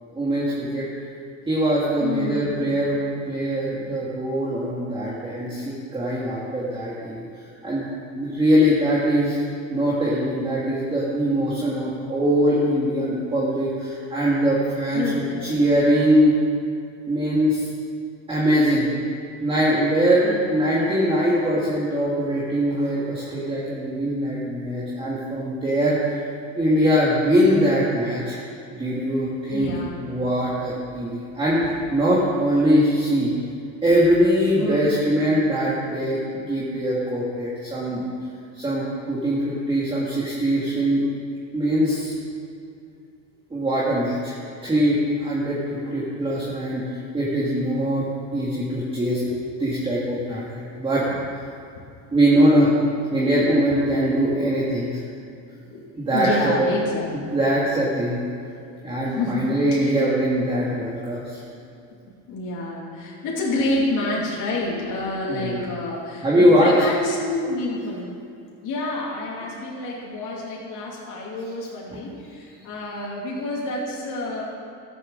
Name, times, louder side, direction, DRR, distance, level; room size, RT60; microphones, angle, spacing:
voice 1, 0.1-0.9 1.5-7.2 7.6-7.9 8.1-9.4 9.7-15.1 15.4-16.4 17.1-17.7 18.3-18.9 19.4-26.2 26.6-28.4 28.7-29.7 30.0-33.3 33.8-38.1 38.5-41.0 41.5-42.1 43.5-44.3 44.6-49.2 49.6-50.5 50.8-51.1 52.1-52.7 53.1-55.0 56.0-56.6 57.3-58.2 58.8-61.4 65.3-65.7 66.2-66.7, equal, 15° right, -6 dB, 1.8 m, -22 dB
voice 2, 2.0-2.6 14.9-15.8 20.2-20.6 29.5-30.0 34.6-35.0 41.9-42.0 45.9-46.0 49.3-49.4 50.3-50.5 55.7-57.4 59.1-60.0 62.3-68.2 68.6-74.4, left 2 dB, 50° left, -5 dB, 2.7 m, -29 dB
14.0 x 7.7 x 6.3 m, 2.5 s
cardioid pair, 145°, 38 cm